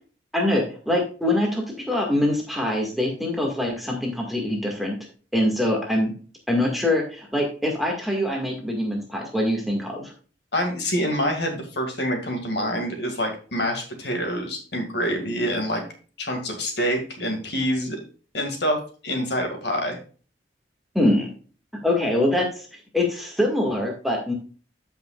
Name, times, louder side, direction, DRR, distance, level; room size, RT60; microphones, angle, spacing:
voice 1, 0.3-5.0 5.3-6.1 6.5-10.1 20.9-21.3 21.8-24.3, left 1 dB, ahead, -1 dB, 1.9 m, -24 dB
voice 2, 10.5-15.8 16.2-18.0 18.3-20.0, equal, 60° left, 3 dB, 2.1 m, -26 dB
13.5 x 5.8 x 2.4 m, 0.38 s
head